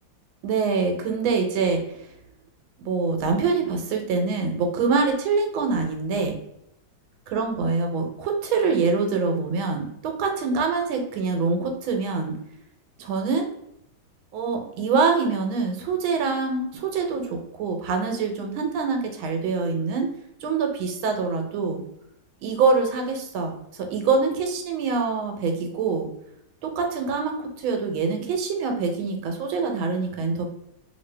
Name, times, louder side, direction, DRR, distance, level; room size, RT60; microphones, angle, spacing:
voice 1, 0.4-2.1 2.8-6.4 7.3-12.4 13.0-13.5 14.3-20.1 20.4-21.8 22.4-26.1 26.6-30.5, right 4 dB, 80° right, 4 dB, 1.5 m, -25 dB
3.3 x 2.6 x 3.2 m, 0.77 s
omnidirectional pair, 2.2 m